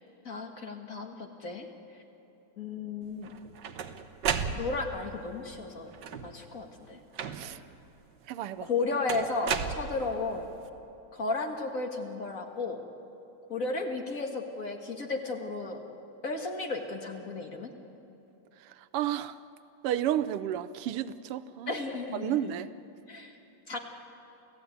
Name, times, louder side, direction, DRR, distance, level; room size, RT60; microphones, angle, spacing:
voice 1, 0.2-1.7 2.6-3.3 4.6-5.9 6.2-7.0 8.6-10.5 11.1-12.8 13.5-15.8 16.2-17.7 21.7-22.5 23.1-23.3 23.7-23.8, left 3 dB, 40° left, 3 dB, 1.9 m, -34 dB
sound 1, 3.2-5.1 5.9-6.5 7.2-7.7 9.1-10.4, right 7 dB, 60° right, 1.5 m, -34 dB
voice 2, 8.3-8.7 18.9-19.3 19.8-21.7 22.1-22.7, right 11 dB, 85° right, 14 dB, 1.7 m, -31 dB
29.0 x 15.0 x 9.4 m, 2.8 s
omnidirectional pair, 2.4 m